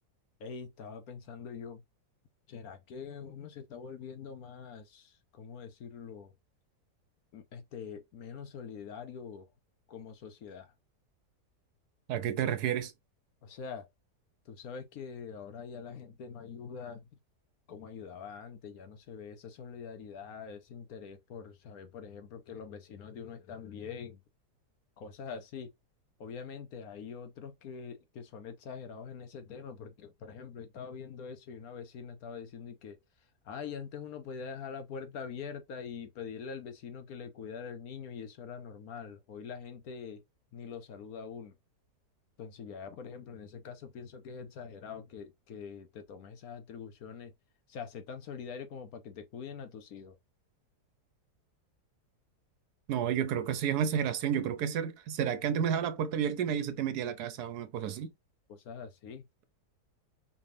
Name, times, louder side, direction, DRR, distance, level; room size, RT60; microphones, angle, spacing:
voice 1, 0.4-1.8 2.5-6.3 7.3-9.5 9.9-10.7 13.4-13.9 14.4-17.1 17.7-24.2 25.0-25.7 26.2-40.2 40.5-41.5 42.4-47.3 47.7-50.2 58.5-59.2, left 6 dB, 65° left, 1.2 m, -44 dB
voice 2, 12.1-12.9 52.9-58.1, right 8 dB, 75° right, 1.3 m, -31 dB
4.9 x 3.4 x 2.7 m
omnidirectional pair, 1.7 m